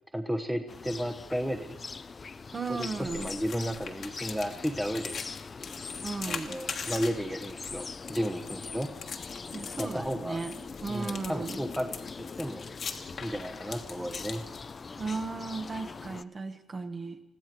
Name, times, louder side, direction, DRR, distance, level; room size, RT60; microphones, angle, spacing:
voice 1, 0.1-1.8 2.7-5.2 6.3-8.9 9.8-10.4 10.9-11.9 12.4-12.7 13.2-14.4, equal, 5° right, 6 dB, 1.0 m, -33 dB
sound 1, 0.7-16.2, left 4 dB, 35° left, 0.5 m, -42 dB
voice 2, 2.5-3.3 6.0-6.6 9.5-10.6 10.8-11.6 15.0-17.2, right 4 dB, 35° right, 7 dB, 1.3 m, -35 dB
sound 2, 2.6-15.1, left 6 dB, 55° left, 1.4 m, -42 dB
21.0 x 15.0 x 4.6 m, 0.94 s
cardioid pair, 90°, 0 cm